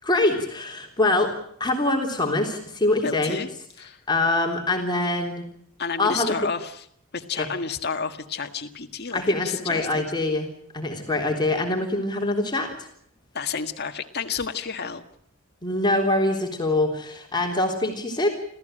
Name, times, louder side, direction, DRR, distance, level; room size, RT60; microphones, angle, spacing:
voice 1, 0.0-1.3 1.6-3.4 4.1-5.4 6.0-6.4 7.3-7.5 9.1-10.5 10.7-12.9 15.6-18.3, left 2 dB, 20° left, 1 dB, 3.5 m, -24 dB
voice 2, 3.0-3.5 3.8-4.0 5.8-6.9 7.1-10.0 13.3-15.0, left 5 dB, 50° left, 6 dB, 1.8 m, -30 dB
28.5 x 14.5 x 9.1 m, 0.68 s
head